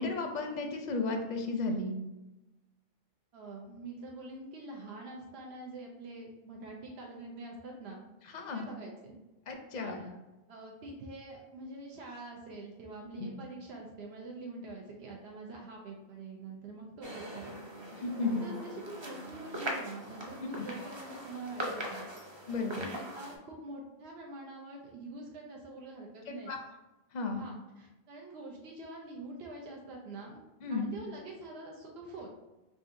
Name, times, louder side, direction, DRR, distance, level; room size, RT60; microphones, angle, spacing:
voice 1, 0.0-1.9 8.3-8.7 9.5-10.0 13.2-13.3 18.0-18.4 20.6-20.7 22.5-22.9 26.3-26.6 27.1-27.5 30.6-30.9, left 3 dB, 55° left, 4 dB, 0.5 m, -34 dB
voice 2, 3.3-8.1 8.5-9.1 9.8-10.1 10.5-17.6 18.2-22.1 22.8-26.5 27.4-30.4 30.7-32.3, right 2 dB, 85° right, -1 dB, 0.9 m, -45 dB
sound 1, 17.0-23.4, right 1 dB, 35° right, 0.5 m, -41 dB
4.8 x 2.6 x 2.5 m, 1.0 s
omnidirectional pair, 1.0 m